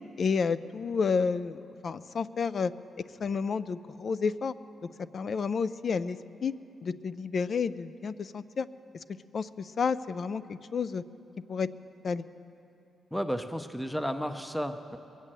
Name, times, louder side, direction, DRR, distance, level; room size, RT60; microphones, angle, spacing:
voice 1, 0.2-2.7 3.2-4.5 5.1-6.5 6.8-8.7 9.3-11.0 11.5-11.7 12.0-12.2, left 5 dB, 50° left, 15 dB, 0.4 m, -30 dB
voice 2, 13.1-15.0, equal, ahead, 8 dB, 0.6 m, -33 dB
21.5 x 8.3 x 7.5 m, 2.8 s
cardioid pair, 115°, 0 cm